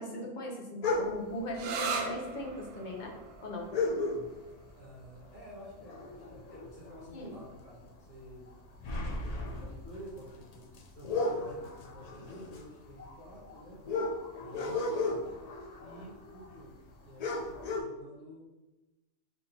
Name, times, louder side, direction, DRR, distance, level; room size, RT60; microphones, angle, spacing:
voice 1, 0.0-3.2 3.4-3.7 7.1-7.3, left 1 dB, 45° left, 1 dB, 0.7 m, -39 dB
sound 1, 0.8-1.4 2.4-2.5 2.7-2.8 3.7-4.6 5.0-5.3 5.6-7.2 7.6-7.8 8.2-16.6 16.9-17.0 17.2-17.8, left 3 dB, 85° left, 0.3 m, -35 dB
sound 2, 1.5-8.9, right 4 dB, 85° right, 1.0 m, -42 dB
voice 2, 4.8-8.5 9.0-13.8 14.4-15.3 15.8-18.5, equal, 70° left, -11 dB, 2.1 m, -50 dB
4.2 x 3.7 x 2.7 m, 1.1 s
omnidirectional pair, 1.4 m